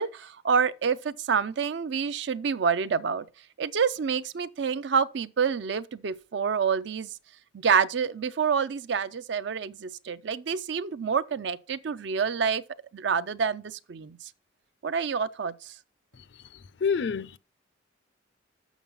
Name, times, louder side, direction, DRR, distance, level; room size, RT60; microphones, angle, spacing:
voice 1, 0.0-3.3 3.6-7.1 7.5-12.6 12.9-14.2 14.8-15.7, right 6 dB, 60° right, 0.4 m, -27 dB
voice 2, 16.5-17.4, left 6 dB, 60° left, 0.4 m, -28 dB
7.2 x 6.0 x 5.5 m
head